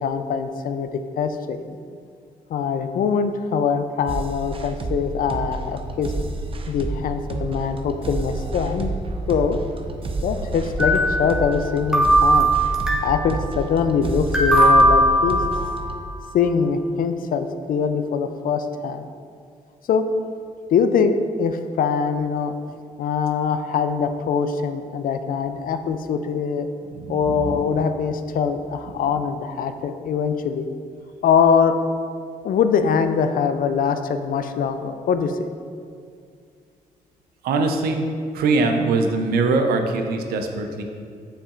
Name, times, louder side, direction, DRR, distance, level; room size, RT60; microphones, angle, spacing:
voice 1, 0.0-1.6 2.5-6.1 6.7-8.9 9.3-9.6 10.2-12.5 13.0-15.4 16.3-19.0 19.9-20.1 20.7-22.5 23.0-26.7 27.1-30.7 31.2-31.7 32.4-35.4, left 6 dB, 65° left, 9 dB, 0.4 m, -23 dB
sound 1, 4.1-16.0, right 2 dB, 35° right, 0.6 m, -29 dB
sound 2, 10.8-11.7 11.9-13.3 14.3-15.9, right 1 dB, 5° right, 1.1 m, -18 dB
voice 2, 26.9-27.6 37.4-38.1 38.3-40.8, right 3 dB, 85° right, 4 dB, 0.6 m, -22 dB
6.8 x 5.6 x 2.5 m, 2.2 s
supercardioid pair, 65°, 15 cm